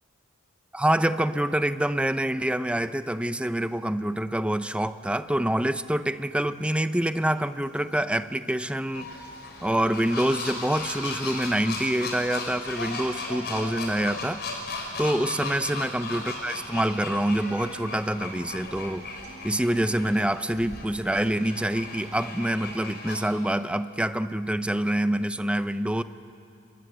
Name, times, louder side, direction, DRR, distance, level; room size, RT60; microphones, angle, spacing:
voice 1, 0.7-9.1 9.6-14.4 15.0-19.1 19.4-26.0, right 1 dB, 5° right, 12 dB, 0.6 m, -26 dB
sound 1, 6.5-22.5, right 2 dB, 35° right, 5.6 m, -52 dB
sound 2, 8.9-23.3, left 3 dB, 50° left, 4.6 m, -37 dB
28.5 x 22.0 x 8.0 m, 2.4 s
head